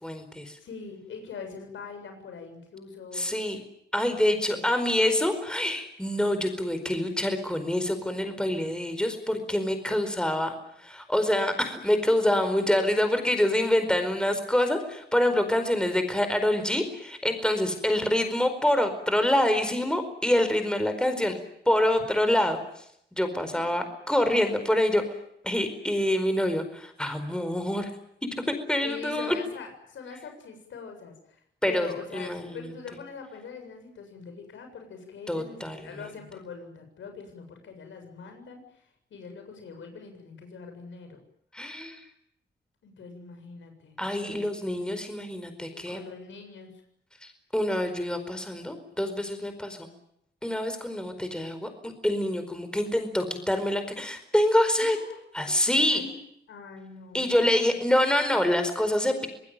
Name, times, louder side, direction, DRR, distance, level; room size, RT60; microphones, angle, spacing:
voice 1, 0.0-0.6 3.1-3.6 3.9-21.3 21.7-22.8 23.1-25.0 25.4-27.9 28.5-29.4 31.6-32.7 35.3-35.9 41.5-42.0 44.0-46.0 47.2-49.9 50.4-55.0 55.3-56.0 57.1-59.3, left 1 dB, 5° left, 7 dB, 4.6 m, -26 dB
voice 2, 0.6-3.3 4.3-4.7 23.3-23.9 28.8-41.2 42.8-44.9 45.7-46.7 54.8-55.6 55.9-56.2 56.5-57.2, left 5 dB, 90° left, 5 dB, 7.4 m, -43 dB
26.0 x 20.0 x 9.0 m, 0.74 s
cardioid pair, 100°, 19 cm